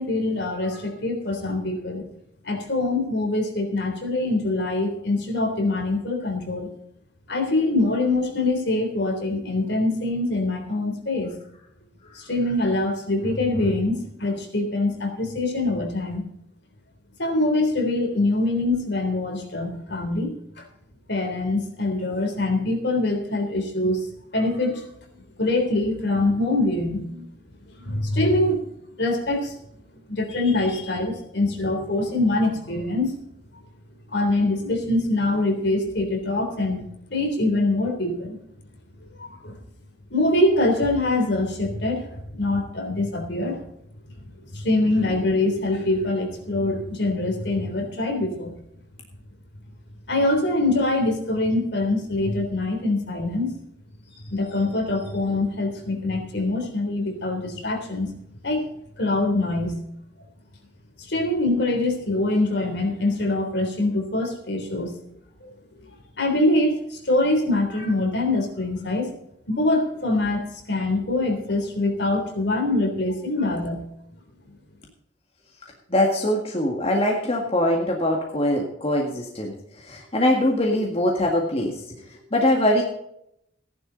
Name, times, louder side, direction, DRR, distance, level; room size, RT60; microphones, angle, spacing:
voice 1, 0.0-2.1 2.4-6.7 7.3-11.3 12.1-16.2 17.2-20.6 21.1-24.1 24.3-24.8 25.4-27.3 27.8-28.6 29.0-29.5 30.1-33.1 34.1-36.9 37.1-38.4 39.1-39.6 40.1-42.0 42.4-43.6 44.5-48.5 50.1-53.5 54.2-58.1 58.4-58.6 59.0-59.7 61.0-64.9 65.4-65.6 65.8-65.9 66.2-69.1 69.5-73.8, left 2 dB, 60° left, 4 dB, 3.4 m, -24 dB
voice 2, 75.9-82.0 82.3-82.8, left 1 dB, 30° left, 0 dB, 1.9 m, -22 dB
15.5 x 11.0 x 4.0 m, 0.76 s
head